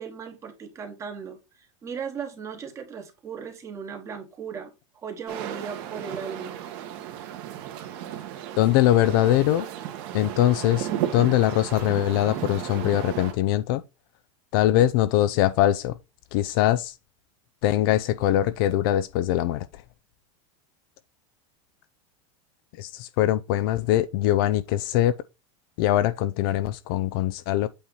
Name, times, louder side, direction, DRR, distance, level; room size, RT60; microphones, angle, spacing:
voice 1, 0.0-6.6, right 6 dB, 20° right, 1.2 m, -37 dB
sound 1, 5.3-13.3, right 11 dB, 45° right, 1.4 m, -34 dB
voice 2, 8.6-9.7 10.1-13.8 14.5-16.0 16.3-16.9 17.6-19.7 22.8-25.1 25.8-27.7, left 13 dB, 45° left, 0.4 m, -22 dB
8.5 x 2.9 x 5.3 m
supercardioid pair, 165°, 16 cm